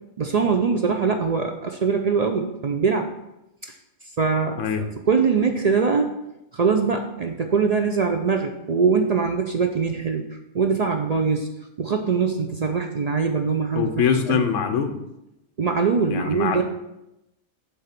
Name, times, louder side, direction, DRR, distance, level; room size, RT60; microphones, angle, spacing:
voice 1, 0.2-3.1 4.2-4.6 5.1-6.1 6.5-10.3 10.5-11.5 11.8-13.9 14.3-14.4 15.6-16.6, right 5 dB, 70° right, 4 dB, 0.3 m, -22 dB
voice 2, 13.7-15.0 16.1-16.6, left 7 dB, 70° left, 7 dB, 1.1 m, -23 dB
7.8 x 3.5 x 5.9 m, 0.89 s
omnidirectional pair, 1.3 m